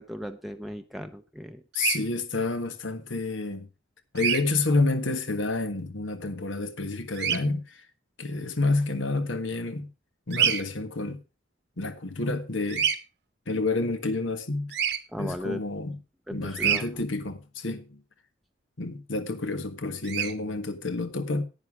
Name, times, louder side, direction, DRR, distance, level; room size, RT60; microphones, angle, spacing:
voice 1, 0.0-1.6 15.1-15.6 16.3-16.9, equal, ahead, 0.6 m, -36 dB
Bird vocalization bird call bird song, 1.7-2.0 4.2-4.4 7.1-7.4 10.3-10.6 12.7-13.0 14.7-15.0 16.5-16.8 20.0-20.3, right 8 dB, 60° right, 1.1 m, -25 dB
voice 2, 1.8-3.7 4.1-7.8 8.2-9.9 10.3-11.2 11.8-12.9 13.5-14.7 15.2-16.0 16.3-18.0 18.8-21.4, left 3 dB, 90° left, 1.6 m, -29 dB
10.5 x 9.2 x 4.9 m
head